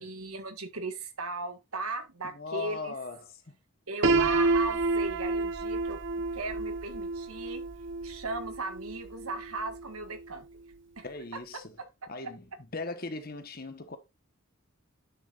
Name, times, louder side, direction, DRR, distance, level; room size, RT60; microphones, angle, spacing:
voice 1, 0.0-2.9 3.9-7.6 8.0-10.4 11.0-11.1 11.3-11.4, right 3 dB, 90° right, 1.6 m, -37 dB
voice 2, 2.3-3.5 11.0-11.7 12.1-12.4 12.7-14.0, left 3 dB, 45° left, 1.2 m, -38 dB
Piano, 4.0-9.9, right 3 dB, 55° right, 0.8 m, -29 dB
9.5 x 7.0 x 2.5 m
head